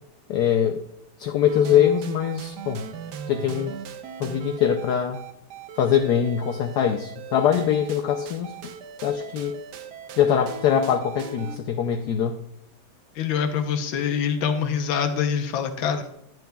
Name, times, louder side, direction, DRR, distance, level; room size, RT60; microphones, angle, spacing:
voice 1, 0.3-0.8 1.2-2.8 3.3-3.8 4.2-5.2 5.8-8.5 9.0-9.6 10.2-12.4, left 9 dB, 70° left, 5 dB, 1.0 m, -22 dB
sound 1, 1.5-11.6, right 8 dB, 70° right, 1.1 m, -39 dB
voice 2, 13.2-16.0, left 7 dB, 85° left, 6 dB, 1.6 m, -25 dB
10.5 x 9.2 x 2.3 m, 0.77 s
omnidirectional pair, 2.1 m